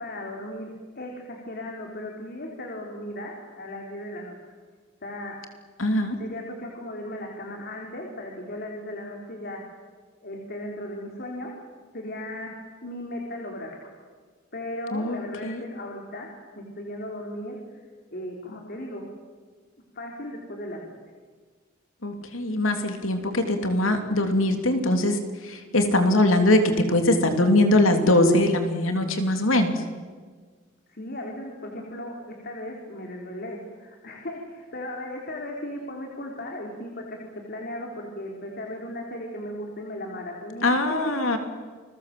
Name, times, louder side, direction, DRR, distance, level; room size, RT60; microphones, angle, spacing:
voice 1, 0.0-4.5 5.0-5.4 6.2-9.6 10.2-11.5 11.9-14.0 14.5-16.3 16.6-17.8 18.1-19.1 19.9-20.8 30.9-41.4, left 1 dB, 55° left, 1 dB, 3.6 m, -36 dB
voice 2, 5.8-6.1 14.9-15.6 22.0-25.2 25.4-29.7 40.6-41.4, left 1 dB, 90° left, 6 dB, 3.1 m, -22 dB
29.5 x 21.5 x 7.7 m, 1.5 s
head